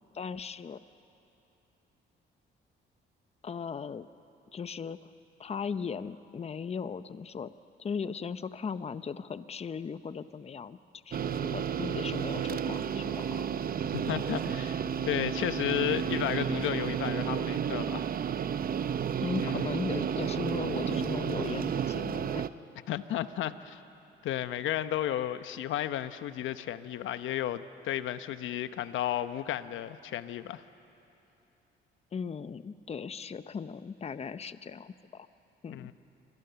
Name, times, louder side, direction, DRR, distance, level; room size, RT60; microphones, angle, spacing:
voice 1, 0.1-0.8 3.4-4.1 4.5-5.1 5.4-7.5 7.8-10.8 11.1-13.5 19.2-22.4 32.1-35.3 35.6-35.9, left 6 dB, 30° left, 13 dB, 0.7 m, -37 dB
sound 1, 11.1-22.5, right 8 dB, 50° right, 0.7 m, -32 dB
voice 2, 13.9-18.1 19.4-19.7 22.9-23.8 24.2-30.6 35.7-35.9, left 12 dB, 80° left, 12 dB, 0.9 m, -33 dB
27.5 x 23.0 x 6.9 m, 2.9 s
cardioid pair, 90°, 20 cm